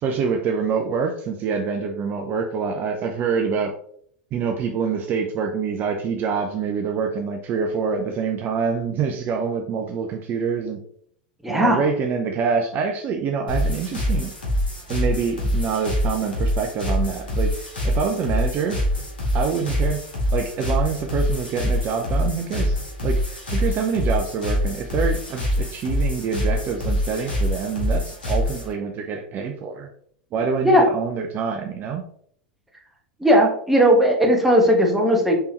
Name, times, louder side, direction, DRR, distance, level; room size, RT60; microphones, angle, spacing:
voice 1, 0.0-3.7 4.3-10.8 11.5-14.3 14.9-17.5 17.8-18.8 19.3-20.0 20.3-29.9 30.3-32.0, right 5 dB, 40° right, 3 dB, 0.5 m, -26 dB
voice 2, 11.4-11.8 30.6-30.9 33.2-35.4, equal, 5° right, -1 dB, 1.2 m, -17 dB
sound 1, 13.5-28.7, left 1 dB, 90° left, 1.6 m, -25 dB
4.4 x 3.4 x 2.9 m, 0.63 s
hypercardioid pair, 90°, 5 cm